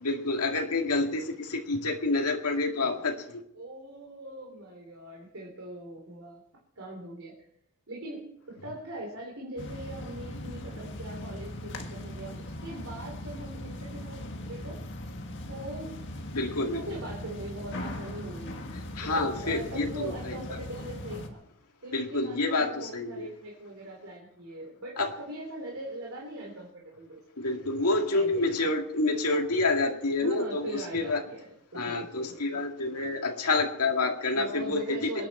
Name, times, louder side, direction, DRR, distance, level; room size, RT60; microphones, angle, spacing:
voice 1, 0.0-3.4 16.3-16.8 19.0-20.4 21.9-23.3 25.0-25.1 27.4-31.2 31.7-35.1, left 3 dB, 90° left, 3 dB, 2.1 m, -28 dB
voice 2, 3.5-6.4 6.8-7.3 7.9-14.8 15.5-16.0 16.7-18.7 19.0-21.4 21.8-27.2 27.9-28.4 30.2-32.6 32.9-33.1 34.3-35.3, right 1 dB, 70° right, -1 dB, 3.4 m, -41 dB
sound 1, 9.6-21.3, left 1 dB, 55° left, 1.7 m, -39 dB
27.0 x 10.0 x 4.3 m, 0.75 s
head